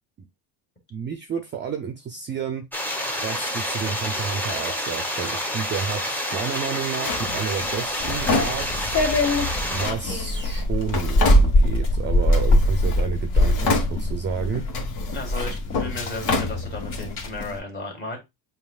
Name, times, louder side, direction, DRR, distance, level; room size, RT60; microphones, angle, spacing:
voice 1, 0.9-2.7 3.2-8.9 9.7-14.7, right 6 dB, 30° right, 6 dB, 0.5 m, -31 dB
sound 1, 2.7-9.9, equal, 5° left, 0.8 m, -28 dB
Drawer open or close, 7.1-9.1 9.8-11.9 12.3-13.1 13.3-14.3 14.7-17.1, left 3 dB, 80° left, 1.6 m, -29 dB
sound 2, 8.0-17.6, left 1 dB, 55° left, 2.2 m, -23 dB
voice 2, 15.1-18.2, left 1 dB, 25° left, 1 dB, 1.8 m, -34 dB
7.3 x 2.8 x 2.3 m, 0.21 s
cardioid pair, 145°, 41 cm